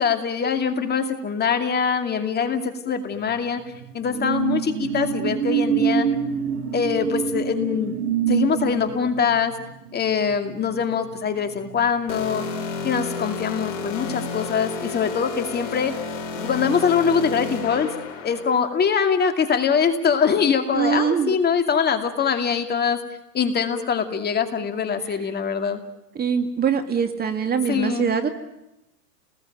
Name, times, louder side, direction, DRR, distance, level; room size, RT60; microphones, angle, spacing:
voice 1, 0.0-3.6 3.9-6.1 6.7-8.0 8.3-9.5 9.9-12.5 12.8-15.9 16.3-17.9 18.2-23.0 23.3-25.8 27.7-28.1, left 6 dB, 20° left, 7 dB, 2.5 m, -23 dB
sound 1, 3.2-12.2 12.5-12.8, right 8 dB, 70° right, 2.9 m, -27 dB
sound 2, 12.1-18.6, left 4 dB, 55° left, 5.4 m, -31 dB
voice 2, 20.7-21.3 26.2-28.3, right 6 dB, 20° right, 7 dB, 2.3 m, -23 dB
30.0 x 20.0 x 9.2 m, 0.89 s
hypercardioid pair, 115°, 46 cm